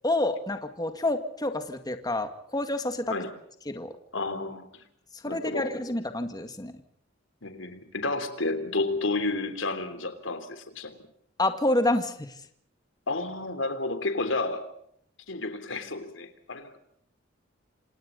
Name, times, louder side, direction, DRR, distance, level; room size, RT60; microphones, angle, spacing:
voice 1, 0.0-3.1 3.7-4.0 5.2-6.7 11.4-12.3, left 2 dB, 20° left, 7 dB, 2.0 m, -28 dB
voice 2, 4.1-4.8 5.2-5.7 7.4-11.0 13.1-14.7 15.3-16.8, left 2 dB, 80° left, 9 dB, 3.3 m, -31 dB
28.5 x 27.5 x 4.0 m, 0.68 s
head